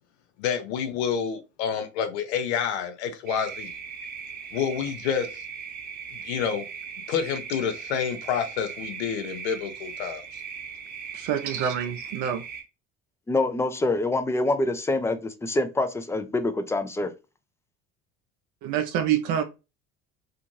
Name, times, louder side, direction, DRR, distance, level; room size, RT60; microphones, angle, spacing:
voice 1, 0.4-3.7 4.5-5.4 6.1-6.6 7.1-10.2, left 7 dB, 80° left, 0.6 m, -28 dB
sound 1, 3.3-12.6, right 6 dB, 30° right, 0.9 m, -39 dB
voice 2, 11.1-12.4 18.6-19.4, right 9 dB, 60° right, 0.5 m, -26 dB
voice 3, 13.3-17.1, left 2 dB, 10° left, 0.4 m, -25 dB
2.6 x 2.5 x 2.9 m
hypercardioid pair, 70°, 33 cm